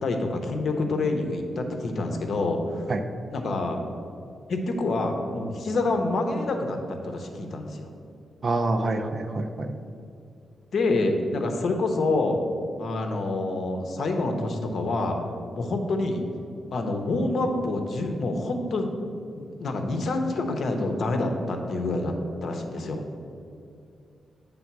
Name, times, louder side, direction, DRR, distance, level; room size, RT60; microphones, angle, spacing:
voice 1, 0.0-2.8 3.3-3.8 4.5-7.9 10.7-12.4 12.8-15.2 15.6-16.3 16.7-18.9 19.4-22.1 22.4-23.0, left 2 dB, 55° left, 4 dB, 0.7 m, -27 dB
voice 2, 8.4-9.7, right 2 dB, 35° right, 7 dB, 0.4 m, -26 dB
8.3 x 3.6 x 6.0 m, 2.5 s
wide cardioid pair, 180°, 0 cm